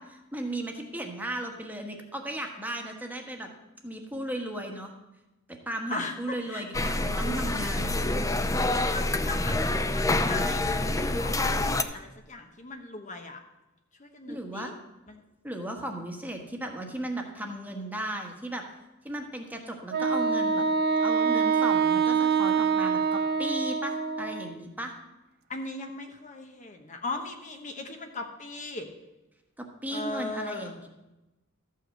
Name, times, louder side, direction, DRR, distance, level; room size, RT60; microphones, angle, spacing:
voice 1, 0.0-3.5 3.8-4.9 5.5-8.1 14.3-14.7 15.4-18.6 19.0-20.6 21.0-24.9 29.6-30.9, right 1 dB, 10° right, 2 dB, 1.4 m, -36 dB
voice 2, 5.9-6.6 8.7-13.4 14.0-14.7 15.1-15.2 25.5-28.9 29.9-30.8, left 2 dB, 35° left, 4 dB, 1.1 m, -38 dB
sound 1, 6.7-11.8, left 2 dB, 15° left, 0.5 m, -27 dB
Wind instrument woodwind instrument, 19.9-24.5, right 5 dB, 50° right, 0.6 m, -25 dB
13.5 x 5.7 x 7.7 m, 0.99 s
head